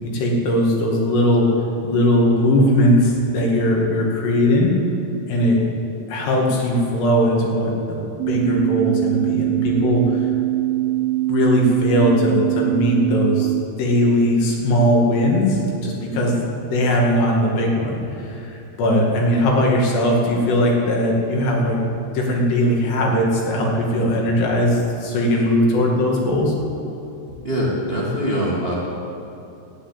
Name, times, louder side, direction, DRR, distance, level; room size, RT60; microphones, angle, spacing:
voice 1, 0.0-4.7 5.3-5.6 6.1-8.0 8.3-10.3 11.3-13.5 13.8-21.8 22.1-26.5, left 1 dB, 80° left, -2 dB, 4.4 m, -19 dB
sound 1, 8.2-13.6, right 17 dB, 85° right, 2.2 m, -22 dB
voice 2, 27.4-28.7, equal, 45° right, -4 dB, 0.8 m, -23 dB
12.5 x 10.0 x 8.9 m, 2.8 s
omnidirectional pair, 4.8 m